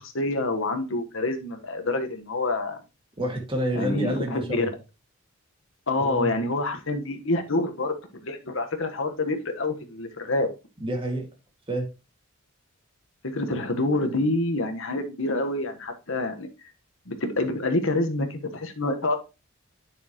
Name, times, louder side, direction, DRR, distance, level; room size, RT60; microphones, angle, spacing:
voice 1, 0.0-2.8 3.7-4.7 5.9-7.9 8.2-10.5 13.2-16.5 17.1-19.2, left 2 dB, 65° left, 1.4 m, -27 dB
voice 2, 3.2-4.7 6.0-6.3 10.8-11.3 11.7-11.9, right 1 dB, 25° right, 2.2 m, -28 dB
9.0 x 6.5 x 3.1 m
head